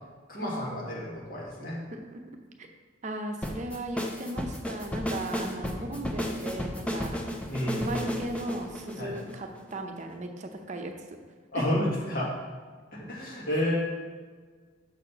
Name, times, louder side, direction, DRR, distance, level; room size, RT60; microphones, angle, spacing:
voice 1, 0.3-1.8 5.8-5.9 7.5-8.0 9.0-9.1 11.5-12.3 12.9-13.8, left 1 dB, 50° left, -4 dB, 1.8 m, -30 dB
voice 2, 1.7-2.2 2.6-2.7 3.0-7.2 7.7-10.9 11.5-11.7, right 1 dB, 40° right, 4 dB, 0.7 m, -37 dB
sound 1, 3.4-9.7, equal, 5° left, 0.5 m, -33 dB
6.4 x 4.3 x 5.5 m, 1.5 s
head